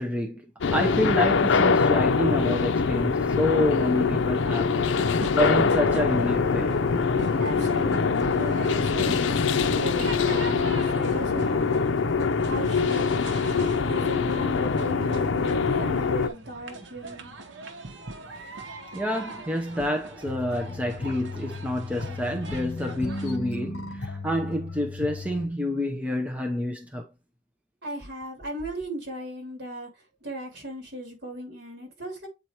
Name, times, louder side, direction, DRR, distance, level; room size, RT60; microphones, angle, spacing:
voice 1, 0.0-6.8 17.7-17.8 18.9-27.1, left 1 dB, 10° right, 0.7 m, -28 dB
sound 1, 0.6-16.3, left 5 dB, 80° left, 0.5 m, -23 dB
sound 2, 4.8-23.4, right 2 dB, 75° right, 1.1 m, -41 dB
voice 2, 7.4-9.3 9.7-11.6 12.5-13.1 13.8-17.3 27.8-29.9 30.2-32.3, equal, 55° right, 2.7 m, -36 dB
sound 3, 20.3-25.5, left 2 dB, 60° left, 1.0 m, -36 dB
8.1 x 4.5 x 2.9 m
head